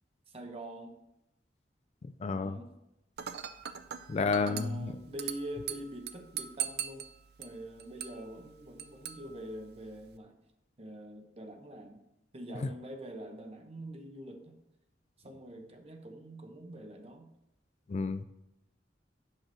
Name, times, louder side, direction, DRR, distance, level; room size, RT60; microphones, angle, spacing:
voice 1, 0.3-0.9 2.3-2.7 4.2-7.0 7.4-10.3 10.8-12.0 12.3-14.6 15.2-17.3, right 1 dB, 35° right, 4 dB, 0.9 m, -44 dB
voice 2, 2.2-2.6 4.1-4.9 12.6-12.7 17.9-18.2, left 4 dB, 35° left, 11 dB, 0.3 m, -30 dB
Dishes pots and pans / Glass, 3.2-10.2, right 9 dB, 60° right, 0.5 m, -42 dB
7.9 x 5.9 x 4.3 m, 0.89 s
head